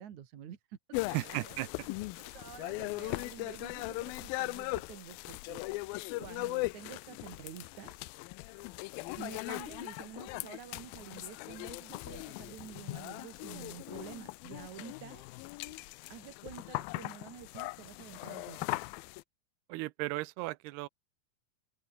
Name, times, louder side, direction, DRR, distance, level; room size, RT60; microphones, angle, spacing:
voice 1, 0.0-1.0 1.2-1.6 2.2-5.8 6.2-8.3 9.2-15.2 15.6-18.9, right 9 dB, 55° right, 2.7 m, -49 dB
sound 1, 0.9-19.2, left 21 dB, 80° left, 2.2 m, -39 dB
voice 2, 1.1-1.7 19.7-20.9, right 20 dB, 85° right, 2.7 m, -35 dB
open air
omnidirectional pair, 4.6 m